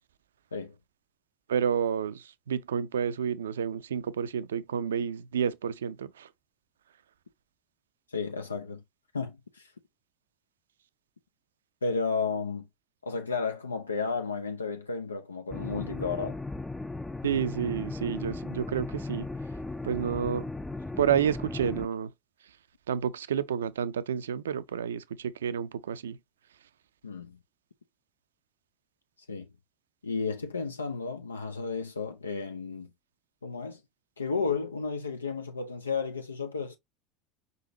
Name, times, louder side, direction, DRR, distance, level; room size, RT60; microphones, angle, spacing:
voice 1, 1.5-6.3 17.2-19.3 19.8-20.4 21.0-22.1 22.9-26.2, right 8 dB, 75° right, 0.4 m, -30 dB
voice 2, 8.1-8.8 9.1-9.7 11.8-12.7 13.0-16.4 27.0-27.4 29.3-29.5 30.0-32.9 33.4-33.8 34.2-36.8, left 4 dB, 80° left, 0.5 m, -33 dB
sound 1, 15.5-21.9, left 2 dB, 10° left, 0.5 m, -37 dB
5.3 x 3.9 x 2.6 m
figure-of-eight pair, 75°, 0 cm